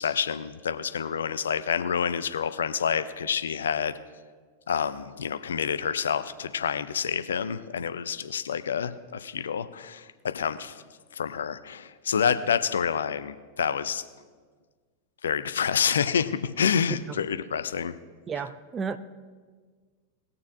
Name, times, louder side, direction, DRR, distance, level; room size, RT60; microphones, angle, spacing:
voice 1, 0.0-3.9 4.7-10.1 10.3-10.8 11.2-14.0 15.2-17.9, left 7 dB, 65° left, 11 dB, 0.5 m, -28 dB
voice 2, 18.3-19.0, right 6 dB, 20° right, 11 dB, 0.5 m, -32 dB
20.0 x 6.8 x 2.6 m, 1.5 s
figure-of-eight pair, 90°, 0 cm